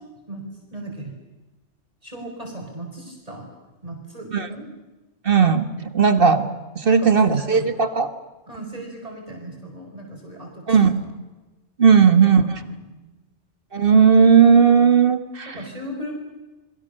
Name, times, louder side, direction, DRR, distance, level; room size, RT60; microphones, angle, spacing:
voice 1, 0.3-1.1 2.0-3.5 3.8-4.7 6.8-7.6 8.5-10.8 12.0-13.0 15.4-16.2, right 1 dB, 30° right, 0 dB, 5.0 m, -37 dB
voice 2, 5.2-6.5 6.7-8.1 10.7-11.0 11.8-12.4 13.7-15.6, right 6 dB, 50° right, 11 dB, 1.7 m, -16 dB
29.5 x 22.0 x 6.7 m, 1.1 s
omnidirectional pair, 1.2 m